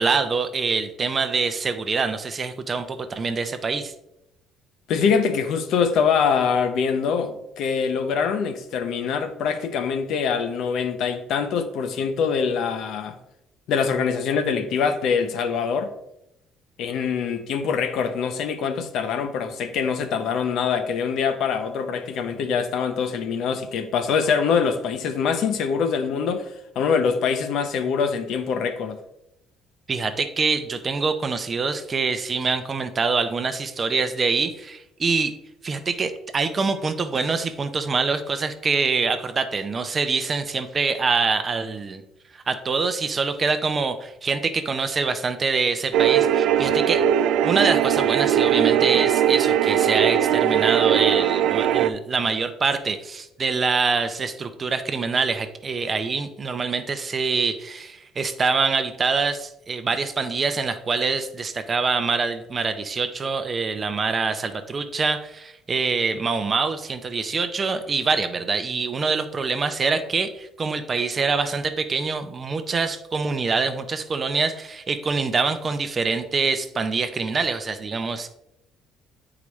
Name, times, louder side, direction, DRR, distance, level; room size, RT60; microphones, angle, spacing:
voice 1, 0.0-3.9 29.9-35.3 35.6-42.0 42.3-47.0 47.4-78.3, right 4 dB, 25° right, 0.5 m, -25 dB
voice 2, 4.9-13.2 13.7-15.9 16.8-26.5 26.8-29.0, left 6 dB, 65° left, 0.7 m, -24 dB
sound 1, 45.9-51.9, right 10 dB, 75° right, 0.3 m, -20 dB
8.3 x 4.8 x 3.1 m
cardioid pair, 150°, 0 cm